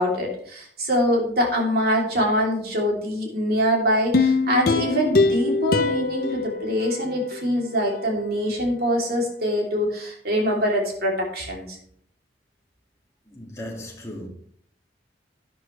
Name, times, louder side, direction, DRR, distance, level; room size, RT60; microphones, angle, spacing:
voice 1, 0.0-11.8, equal, 55° right, 3.4 m, -24 dB
sound 1, 4.1-7.4 7.9-8.0, left 3 dB, 55° left, 0.8 m, -23 dB
voice 2, 13.3-14.3, left 1 dB, 15° left, 2.4 m, -36 dB
11.5 x 10.5 x 3.4 m
head